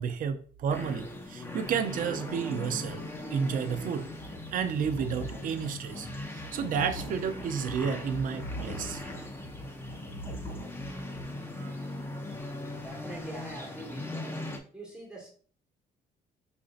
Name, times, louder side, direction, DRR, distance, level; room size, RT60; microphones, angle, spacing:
voice 1, 0.0-3.0 3.3-4.1 4.5-9.0 11.6-11.8, right 7 dB, 55° right, 8 dB, 0.6 m, -31 dB
sound 1, 0.7-14.6, left 1 dB, 15° left, 0.6 m, -40 dB
sound 2, 4.1-11.2, equal, 35° left, 1.5 m, -42 dB
voice 2, 12.8-14.4 14.7-15.3, right 2 dB, 5° right, -2 dB, 1.5 m, -44 dB
5.0 x 2.7 x 2.5 m, 0.44 s
cardioid pair, 110°, 17 cm